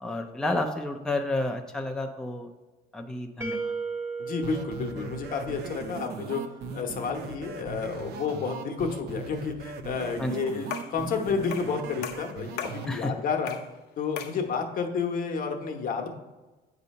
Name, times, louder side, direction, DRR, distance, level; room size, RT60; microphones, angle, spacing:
voice 1, 0.0-2.5 2.9-3.6 10.2-10.4 12.9-13.1, left 2 dB, 5° left, 3 dB, 0.4 m, -30 dB
sound 1, 3.4-6.3, right 4 dB, 15° right, 0.8 m, -36 dB
voice 2, 4.2-6.4 6.7-13.6 14.0-16.1, left 5 dB, 55° left, 3 dB, 0.9 m, -31 dB
sound 2, 4.4-12.9, right 5 dB, 70° right, 0.6 m, -38 dB
sound 3, 10.7-11.0 11.5-11.8 12.0-12.8 13.5-13.7 14.2-14.4, left 9 dB, 80° left, 0.6 m, -37 dB
8.0 x 2.8 x 5.3 m, 1.2 s
cardioid pair, 110°, 17 cm